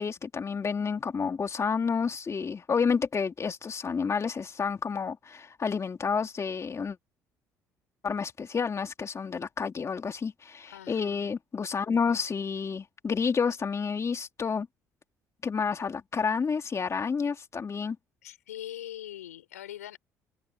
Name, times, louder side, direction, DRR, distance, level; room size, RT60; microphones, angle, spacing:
voice 1, 0.0-7.0 8.0-14.7 15.4-18.0, left 5 dB, 35° left, 2.9 m, -30 dB
voice 2, 10.7-11.4 18.2-20.0, left 12 dB, 85° left, 5.6 m, -42 dB
hypercardioid pair, 55°, 8 cm